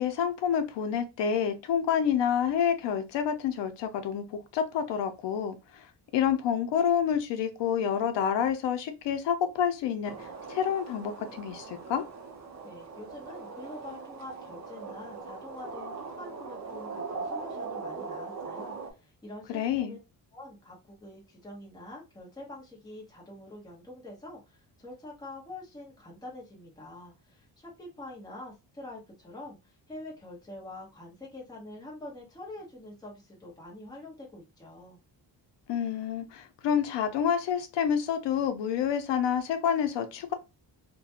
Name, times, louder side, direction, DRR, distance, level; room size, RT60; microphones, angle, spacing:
voice 1, 0.0-5.8 6.1-10.1 10.5-12.0 19.5-20.0 35.7-40.3, left 8 dB, 85° left, 0.5 m, -28 dB
sound 1, 10.0-18.9, right 4 dB, 40° right, 0.6 m, -40 dB
voice 2, 12.6-20.0 20.3-35.0, left 2 dB, 10° left, 0.8 m, -45 dB
2.4 x 2.2 x 2.7 m
cardioid pair, 145°, 42 cm